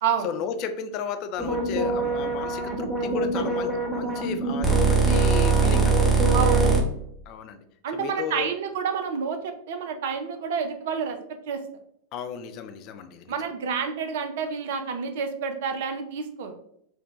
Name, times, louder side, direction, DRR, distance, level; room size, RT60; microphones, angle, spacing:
voice 1, 0.2-6.1 7.3-7.6 7.9-8.5 12.1-13.3, left 7 dB, 40° left, 8 dB, 0.4 m, -34 dB
sound 1, 1.4-6.8, right 3 dB, 15° right, 0.9 m, -22 dB
voice 2, 6.3-6.8 7.8-11.2 11.5-11.6 13.3-16.6, right 6 dB, 55° right, 7 dB, 0.5 m, -29 dB
4.5 x 2.2 x 3.0 m, 0.74 s
figure-of-eight pair, 90°, 0 cm